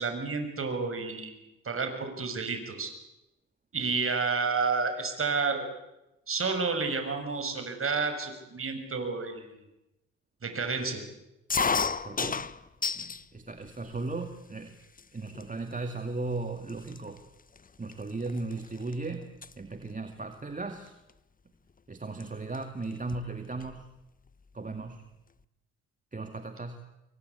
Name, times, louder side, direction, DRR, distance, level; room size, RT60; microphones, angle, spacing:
voice 1, 0.0-1.4 1.7-2.9 3.7-5.6 6.3-9.6 10.4-11.0, right 4 dB, 40° right, 6 dB, 7.0 m, -30 dB
sound 1, 11.5-13.2 13.7-14.3 15.0-15.1 15.3-15.7 16.4-16.5 16.7-18.9 19.2-19.5 20.9-21.1 22.2-22.3 22.5-22.6 22.9-23.8, left 5 dB, 25° left, 1.1 m, -32 dB
voice 2, 12.0-12.4 12.9-14.8 15.1-17.2 17.8-19.3 19.6-21.0 21.9-23.9 24.5-25.1 26.1-26.9, right 3 dB, 25° right, 7 dB, 2.4 m, -36 dB
27.0 x 23.0 x 8.6 m, 0.95 s
hypercardioid pair, 55°, 35 cm